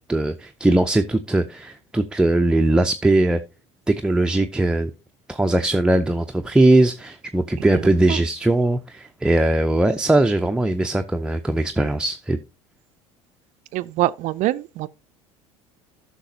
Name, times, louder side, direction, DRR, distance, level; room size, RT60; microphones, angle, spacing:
voice 1, 0.1-3.4 3.9-4.9 5.3-12.4, right 1 dB, 5° right, 0.5 m, -20 dB
voice 2, 7.7-8.2 13.7-14.9, right 16 dB, 50° right, 0.4 m, -25 dB
14.0 x 5.9 x 2.7 m
hypercardioid pair, 70°, 16 cm